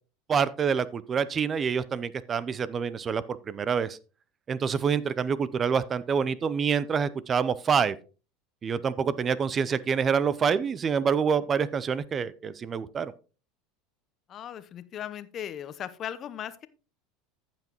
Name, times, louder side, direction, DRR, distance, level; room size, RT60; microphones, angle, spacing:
voice 1, 0.3-4.0 4.5-8.0 8.6-13.1, right 6 dB, 30° right, 18 dB, 0.6 m, -27 dB
voice 2, 14.3-16.7, left 10 dB, 40° left, 13 dB, 0.8 m, -37 dB
14.5 x 5.8 x 3.0 m, 0.35 s
hypercardioid pair, 85°, 0 cm